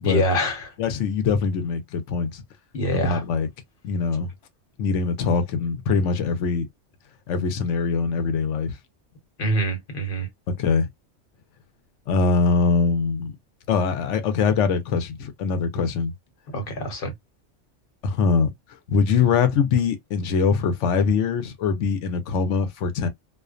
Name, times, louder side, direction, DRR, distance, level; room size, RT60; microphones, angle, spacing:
voice 1, 0.0-0.7 2.7-3.2 9.4-10.3 16.5-17.1, right 1 dB, 50° left, 1.1 m, -25 dB
voice 2, 0.8-2.4 2.9-3.5 3.8-4.3 4.8-6.7 7.3-8.8 10.5-10.9 12.1-13.4 13.7-16.1 18.0-18.5 18.9-23.1, left 5 dB, 80° left, 0.9 m, -23 dB
2.4 x 2.1 x 2.3 m
omnidirectional pair, 1.2 m